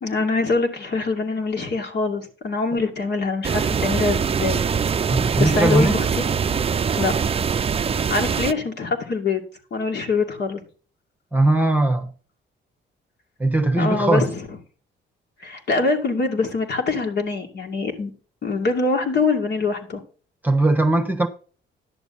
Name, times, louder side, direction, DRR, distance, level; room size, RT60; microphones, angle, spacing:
voice 1, 0.0-4.6 5.4-6.2 7.0-7.1 8.1-9.4 9.7-10.6 13.8-14.4 15.4-18.1 18.4-20.0, left 3 dB, 55° left, 2.5 m, -24 dB
Wind in the Trees, 3.4-8.5, right 6 dB, 30° right, 0.5 m, -23 dB
voice 2, 5.1-6.0 11.3-12.1 13.4-14.3 20.4-21.3, right 2 dB, 10° right, 1.2 m, -19 dB
11.0 x 7.1 x 4.2 m
cardioid pair, 90°, 20 cm